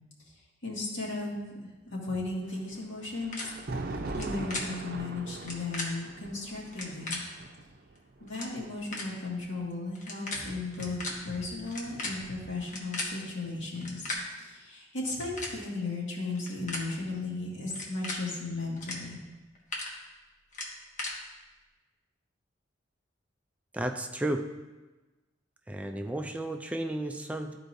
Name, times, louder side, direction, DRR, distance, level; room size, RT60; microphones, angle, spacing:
voice 1, 0.6-1.5 1.9-3.5 3.9-7.2 8.2-11.0 11.2-14.1 14.4-19.2, left 3 dB, 85° left, -4 dB, 2.0 m, -35 dB
Thunder, 2.4-9.6 10.7-12.4, right 2 dB, 55° right, 0.6 m, -41 dB
sound 1, 3.3-3.4 4.1-4.2 4.5-4.6 5.4-5.9 6.7-7.2 8.0-8.1 8.3-8.5 8.9-9.1 9.9-10.4 10.7-11.1 11.7-13.1 13.7-14.2 15.0-15.5 16.3-16.8 17.7-18.2 18.8-19.0 19.3-19.9 20.5-21.1, left 2 dB, 40° left, 1.2 m, -36 dB
voice 2, 23.7-24.5 25.7-27.6, right 1 dB, 5° right, 5 dB, 0.3 m, -33 dB
12.5 x 4.5 x 2.6 m, 1.2 s
head